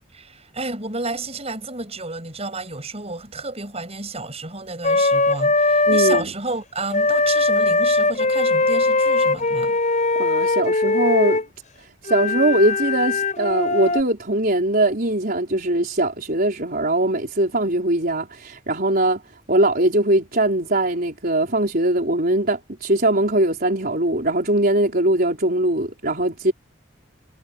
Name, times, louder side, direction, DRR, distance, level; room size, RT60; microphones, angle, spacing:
voice 1, 0.1-9.8, right 3 dB, 30° right, 6.6 m, -31 dB
Wind instrument woodwind instrument, 4.8-6.2 6.9-11.5 12.1-14.0, left 3 dB, 40° left, 5.2 m, -20 dB
voice 2, 5.9-6.3 10.2-11.4 12.0-19.2 19.5-26.5, right 1 dB, 50° right, 4.6 m, -21 dB
head